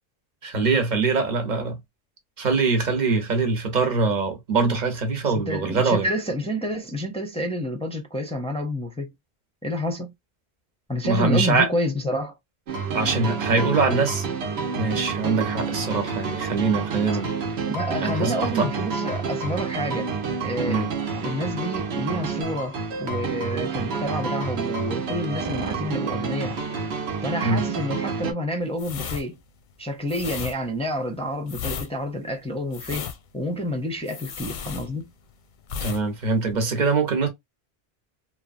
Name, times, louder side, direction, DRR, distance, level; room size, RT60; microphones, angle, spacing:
voice 1, 0.4-1.8 2.4-6.1 11.0-11.7 12.9-14.2 14.8-17.3 18.0-18.7 20.7-20.9 27.4-27.6 35.8-37.3, right 4 dB, 50° right, 0.9 m, -23 dB
voice 2, 5.2-9.1 9.6-10.1 10.9-12.4 17.7-20.1 20.4-20.8 21.2-26.6 27.2-29.4 29.8-33.1 33.3-35.1, equal, 10° left, 0.4 m, -29 dB
sound 1, 12.7-28.3, right 5 dB, 80° right, 0.9 m, -29 dB
sound 2, 28.7-35.3 35.6-36.0 36.3-36.5, left 7 dB, 60° left, 0.6 m, -34 dB
2.9 x 2.2 x 2.4 m
omnidirectional pair, 1.1 m